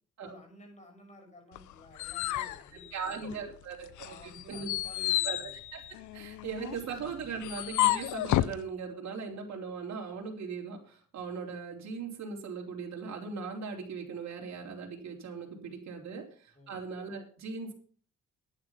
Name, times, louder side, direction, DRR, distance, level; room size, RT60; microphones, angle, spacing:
voice 1, 0.2-3.5 4.0-5.6 6.9-7.3 16.5-16.8, left 1 dB, 25° left, 1 dB, 6.8 m, -53 dB
sound 1, 1.6-3.5 4.0-8.6, left 14 dB, 80° left, 0.7 m, -31 dB
voice 2, 2.9-4.7 5.2-5.8 6.1-17.7, right 5 dB, 60° right, 0 dB, 3.5 m, -39 dB
10.5 x 9.9 x 5.8 m, 0.43 s
cardioid pair, 90°, 30 cm